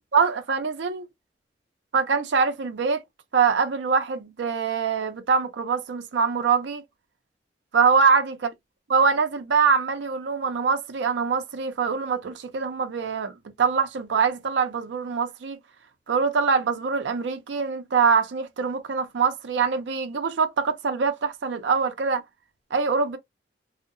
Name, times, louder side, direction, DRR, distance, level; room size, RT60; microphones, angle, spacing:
voice 1, 0.1-1.1 1.9-3.0 3.3-6.8 7.7-8.4 8.9-15.6 16.1-22.2 22.7-23.2, right 5 dB, 85° right, 0.5 m, -23 dB
2.6 x 2.1 x 2.5 m
head